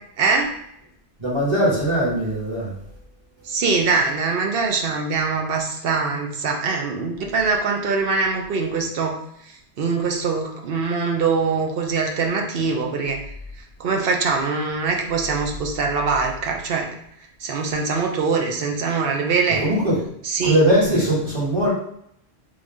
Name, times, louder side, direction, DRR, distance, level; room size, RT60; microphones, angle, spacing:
voice 1, 0.2-0.6 3.4-9.2 9.5-13.2 13.8-16.9 17.4-19.6 20.2-20.6 20.9-21.0, right 4 dB, 60° right, 2 dB, 0.8 m, -23 dB
voice 2, 1.2-2.7 19.6-20.0 20.4-21.7, equal, 25° right, -8 dB, 1.5 m, -20 dB
3.3 x 2.6 x 3.4 m, 0.72 s
omnidirectional pair, 1.1 m